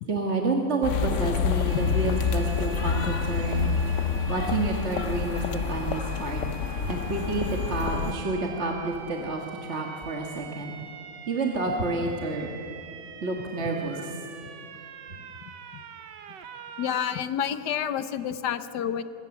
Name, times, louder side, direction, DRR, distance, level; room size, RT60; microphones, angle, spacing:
voice 1, 0.1-3.8 4.3-6.4 6.8-10.7 11.3-12.5 13.2-14.1, right 3 dB, 40° right, 1 dB, 1.8 m, -29 dB
sound 1, 0.8-8.1, left 6 dB, 55° left, 0.9 m, -28 dB
sound 2, 1.7-17.2, right 7 dB, 80° right, 1.8 m, -44 dB
voice 2, 16.8-19.0, left 9 dB, 75° left, 12 dB, 1.4 m, -29 dB
24.0 x 21.0 x 7.1 m, 2.8 s
omnidirectional pair, 1.9 m